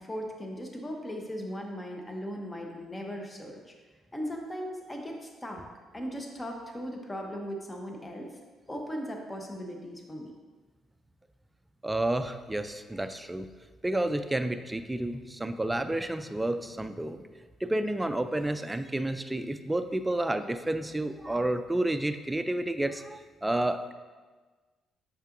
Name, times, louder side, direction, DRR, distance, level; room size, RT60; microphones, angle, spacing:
voice 1, 0.0-3.6 4.1-5.6 5.9-8.4 8.7-10.3, equal, 20° left, 1 dB, 0.8 m, -38 dB
voice 2, 11.8-13.5 13.8-17.3 17.6-23.9, right 1 dB, 10° right, 9 dB, 0.3 m, -30 dB
6.7 x 5.6 x 2.6 m, 1.4 s
cardioid pair, 90°, 0 cm